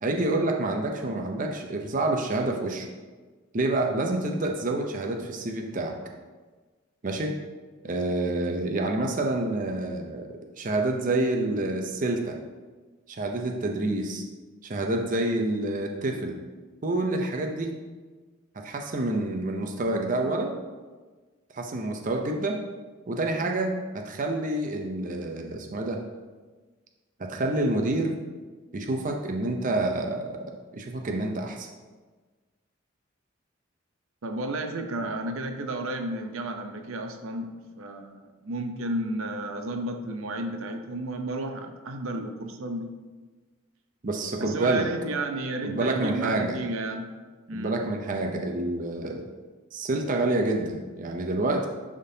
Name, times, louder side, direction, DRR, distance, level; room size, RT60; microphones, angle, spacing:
voice 1, 0.0-2.9 3.5-6.0 7.0-7.3 7.8-12.4 13.1-14.2 14.6-16.4 16.8-17.7 18.5-20.6 21.5-22.6 23.1-26.0 27.2-28.1 28.7-31.7 44.0-44.9 45.6-46.6 47.5-49.2 49.7-51.7, right 2 dB, 40° right, 2 dB, 0.6 m, -28 dB
voice 2, 34.2-42.9 44.4-47.1 47.5-47.8, right 2 dB, 85° right, 5 dB, 0.6 m, -32 dB
10.5 x 3.7 x 2.7 m, 1.3 s
head